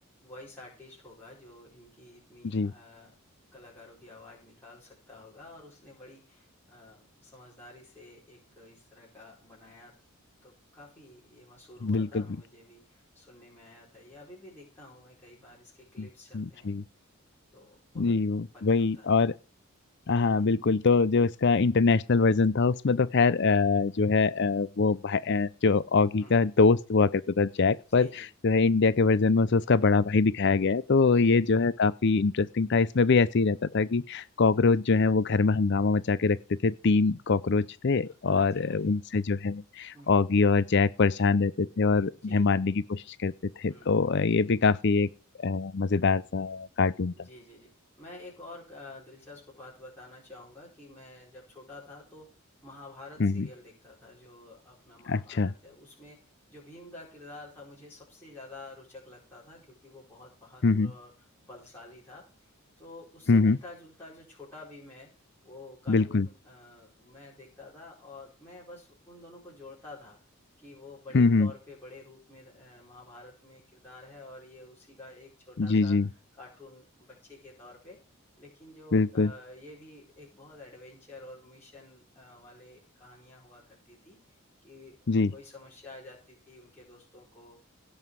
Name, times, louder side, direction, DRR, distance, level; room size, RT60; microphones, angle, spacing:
voice 1, 0.2-3.1 3.5-9.9 10.4-16.7 17.5-18.1 18.5-19.1 20.3-20.5 26.2-26.3 27.9-28.3 31.0-31.5 38.3-38.9 39.9-40.2 42.1-42.4 43.7-44.3 47.1-47.7 48.0-52.3 52.6-56.2 56.5-62.5 62.8-65.1 65.4-70.2 70.6-76.0 76.4-78.0 78.4-87.6, left 2 dB, 10° left, 4.8 m, -50 dB
voice 2, 11.8-12.2 16.0-16.1 16.3-16.8 18.0-19.3 20.1-43.3 43.6-45.1 45.4-47.1 53.2-53.5 55.1-55.5 60.6-60.9 63.3-63.6 65.9-66.3 71.1-71.5 75.6-76.1 78.9-79.3 85.1-85.3, left 4 dB, 50° left, 0.5 m, -24 dB
17.0 x 5.6 x 6.2 m
head